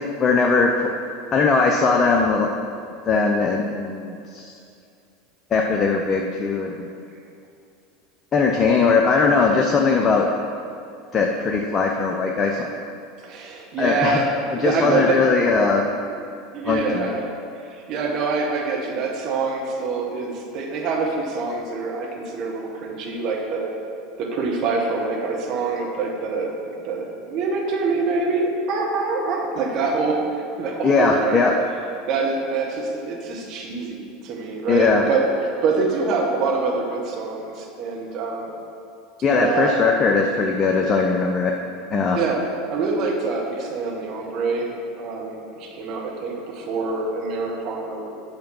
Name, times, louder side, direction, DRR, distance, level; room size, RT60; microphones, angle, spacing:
voice 1, 0.2-0.7 1.3-2.5 3.1-4.5 5.5-6.9 8.3-10.3 11.1-12.7 13.8-14.2 14.5-16.0 16.6-17.2 30.8-31.5 34.7-35.0 39.2-41.5 41.9-42.2, left 4 dB, 30° left, 1 dB, 0.7 m, -20 dB
voice 2, 13.2-14.3 14.6-15.2 16.5-17.2 17.6-23.7 24.2-31.4 32.0-38.5 39.3-39.8 42.1-42.4 42.7-48.1, right 4 dB, 45° right, 0 dB, 1.5 m, -25 dB
8.8 x 5.7 x 5.5 m, 2.5 s
figure-of-eight pair, 75°, 0 cm